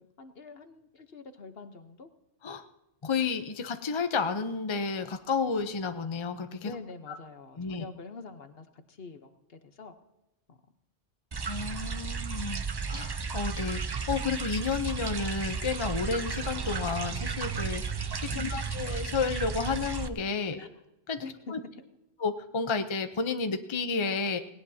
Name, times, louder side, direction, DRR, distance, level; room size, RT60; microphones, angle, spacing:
voice 1, 0.0-2.1 2.5-2.6 6.6-9.9 10.5-10.6 12.0-12.1 18.2-18.6 20.5-20.7 21.2-21.5, left 4 dB, 60° left, 8 dB, 1.3 m, -45 dB
voice 2, 3.0-6.7 7.1-7.2 7.6-7.9 11.4-20.6 21.1-21.2 21.5-21.6 22.2-24.4, left 5 dB, 30° left, 8 dB, 0.7 m, -31 dB
sound 1, 11.3-20.1, right 5 dB, 35° right, 0.4 m, -33 dB
18.5 x 18.0 x 2.8 m, 0.92 s
omnidirectional pair, 1.2 m